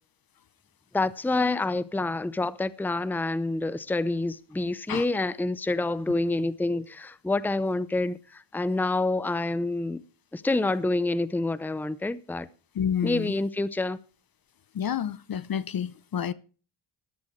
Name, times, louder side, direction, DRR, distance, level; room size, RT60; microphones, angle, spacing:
voice 1, 0.9-10.0 10.3-12.5 13.0-14.0, left 2 dB, 5° left, 0.6 m, -27 dB
voice 2, 12.7-13.3 14.7-16.3, left 8 dB, 45° left, 0.7 m, -29 dB
13.0 x 12.5 x 3.2 m
cardioid pair, 70°, 48 cm